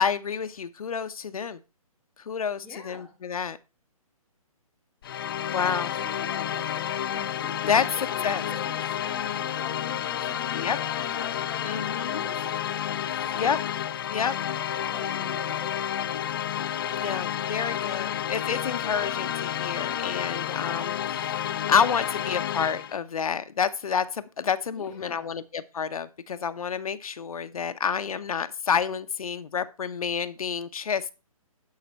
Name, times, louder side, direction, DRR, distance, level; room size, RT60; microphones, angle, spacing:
voice 1, 0.0-1.6 2.2-3.6 5.5-5.9 7.7-8.4 10.5-10.8 11.6-12.2 13.4-13.6 14.1-14.4 17.0-31.1, left 6 dB, 70° left, 12 dB, 0.9 m, -29 dB
voice 2, 2.6-3.1 5.6-13.0 13.3-13.6 14.2-16.1 24.7-25.4, left 3 dB, 5° left, -5 dB, 1.1 m, -45 dB
sound 1, 5.0-23.0, left 10 dB, 40° left, 0.5 m, -30 dB
11.5 x 5.7 x 4.4 m, 0.30 s
hypercardioid pair, 160°, 19 cm